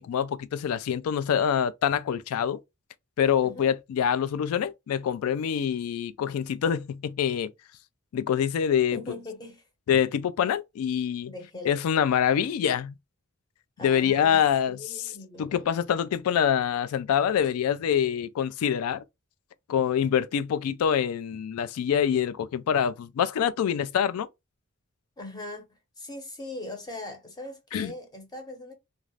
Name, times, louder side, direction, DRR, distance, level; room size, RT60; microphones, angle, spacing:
voice 1, 0.0-2.6 3.2-7.5 8.1-9.0 9.9-11.3 11.6-12.9 13.8-14.8 15.4-19.0 19.7-24.3 27.7-27.9, left 8 dB, 85° left, 0.3 m, -25 dB
voice 2, 8.9-9.6 11.3-11.7 13.8-15.7 25.2-25.6 26.0-28.7, left 2 dB, 20° left, 0.7 m, -40 dB
2.4 x 2.3 x 3.1 m
head